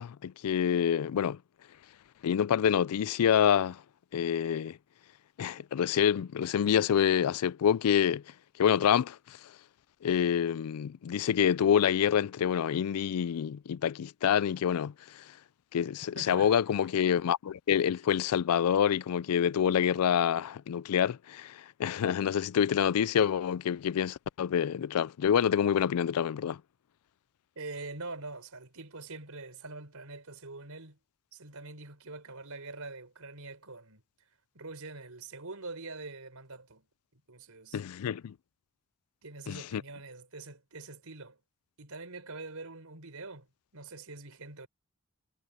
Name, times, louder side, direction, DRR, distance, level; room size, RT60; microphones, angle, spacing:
voice 1, 0.0-1.4 2.2-3.8 4.1-4.8 5.4-8.2 8.6-9.4 10.0-15.2 15.7-26.6 37.7-38.3 39.5-39.8, left 8 dB, 90° left, 0.4 m, -27 dB
voice 2, 16.1-16.5 27.6-31.0 31.3-36.9 37.1-37.8 39.2-41.4 41.8-43.5 43.7-44.7, right 3 dB, 80° right, 4.3 m, -44 dB
head